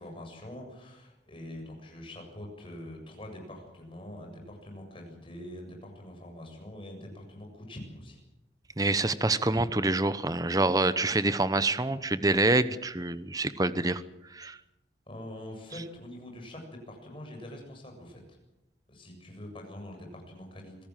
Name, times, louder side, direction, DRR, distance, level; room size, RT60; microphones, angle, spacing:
voice 1, 0.0-8.2 15.1-18.4 18.9-20.9, left 1 dB, 30° left, 2 dB, 7.4 m, -44 dB
voice 2, 8.8-14.0 14.3-14.6, right 2 dB, 20° right, 13 dB, 0.9 m, -26 dB
26.0 x 17.5 x 7.5 m, 0.91 s
head